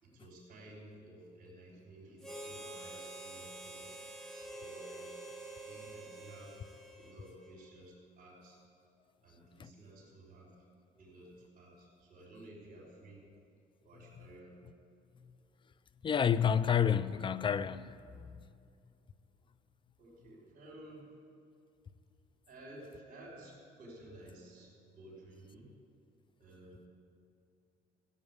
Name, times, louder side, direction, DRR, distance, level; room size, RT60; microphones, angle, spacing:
voice 1, 0.0-5.1 5.7-6.5 7.0-8.6 9.2-10.5 11.0-13.2 13.8-14.6 20.0-21.1 22.5-25.7 26.4-26.8, right 1 dB, 55° right, 4.7 m, -54 dB
Harmonica, 2.2-7.7, right 2 dB, 5° left, 1.9 m, -47 dB
voice 2, 16.0-18.0, left 8 dB, 30° left, 0.5 m, -29 dB
15.5 x 8.4 x 9.6 m
cardioid pair, 110°, 17 cm